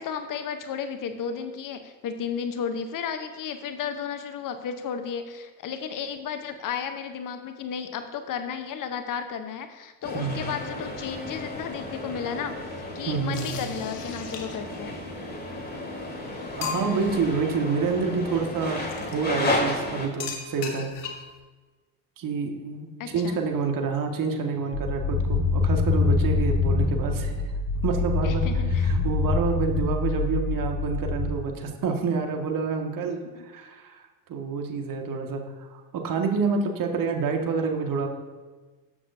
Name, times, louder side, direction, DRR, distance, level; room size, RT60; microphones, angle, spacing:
voice 1, 0.0-12.5 12.9-15.0 23.0-23.4 28.2-28.9 33.3-33.4, left 7 dB, 40° left, 8 dB, 1.0 m, -33 dB
sound 1, 10.0-20.1, left 2 dB, 20° left, 3.5 m, -33 dB
voice 2, 13.1-13.6 16.6-20.9 22.2-22.9 23.1-27.3 27.8-28.4 28.8-34.0 34.3-38.1, right 5 dB, 40° right, 2 dB, 1.9 m, -28 dB
sound 2, 13.3-14.8 15.7-15.8 16.2-16.3 16.6-17.2 18.9-19.2 20.2-21.4, left 6 dB, 75° left, 1.5 m, -36 dB
sound 3, 24.7-31.3, left 4 dB, 60° left, 2.4 m, -25 dB
20.0 x 7.1 x 2.8 m, 1.3 s
figure-of-eight pair, 60°, 48 cm